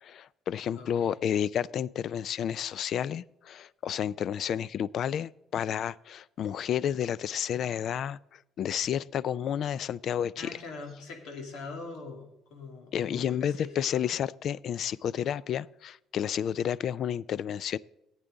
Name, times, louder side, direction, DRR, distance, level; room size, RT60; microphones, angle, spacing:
voice 1, 0.0-10.5 12.9-17.8, left 9 dB, 55° left, 0.3 m, -31 dB
voice 2, 0.7-1.2 10.4-13.8, left 3 dB, 90° left, 2.4 m, -43 dB
14.5 x 8.9 x 3.9 m
cardioid pair, 140°, 0 cm